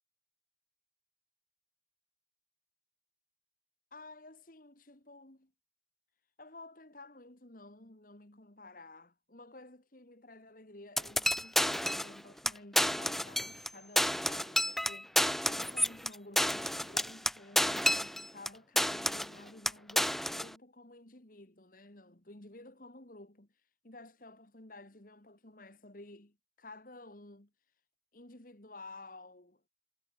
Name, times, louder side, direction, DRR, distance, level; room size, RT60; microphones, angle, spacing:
voice 1, 3.9-5.5 6.4-15.2 15.4-23.5 23.8-27.5 28.1-29.7, left 2 dB, 45° left, 2.1 m, -53 dB
sound 1, 11.0-12.2 12.5-12.6 12.8-13.7 14.0-18.5 18.8-19.4 19.7-20.5, left 1 dB, ahead, 0.5 m, -30 dB
head